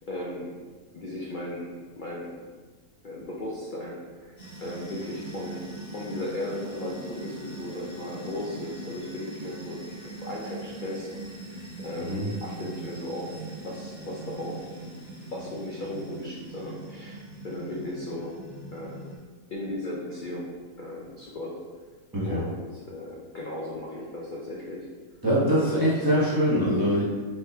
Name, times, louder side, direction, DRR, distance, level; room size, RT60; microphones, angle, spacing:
voice 1, 0.1-0.6 0.9-2.4 3.0-4.3 4.6-14.6 15.3-18.4 18.7-19.1 19.5-21.6 22.2-24.9 25.5-26.4, left 1 dB, 75° left, -4 dB, 0.4 m, -36 dB
sound 1, 4.4-19.2, right 3 dB, 50° left, 1.4 m, -41 dB
voice 2, 22.1-22.4 25.2-27.0, equal, 15° right, -7 dB, 0.9 m, -23 dB
4.2 x 3.6 x 2.7 m, 1.4 s
omnidirectional pair, 1.6 m